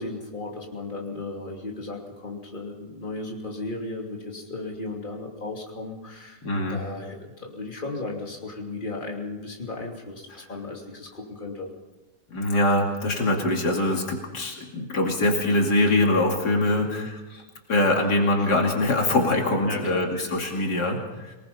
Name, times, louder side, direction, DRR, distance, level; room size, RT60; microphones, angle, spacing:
voice 1, 0.0-6.4 6.7-11.7 16.7-17.1 19.6-20.0, left 2 dB, 30° left, 0 dB, 3.0 m, -35 dB
voice 2, 6.4-6.8 12.3-17.1 17.7-21.4, left 1 dB, 90° left, 1 dB, 3.1 m, -23 dB
25.0 x 19.0 x 5.5 m, 1.1 s
omnidirectional pair, 1.7 m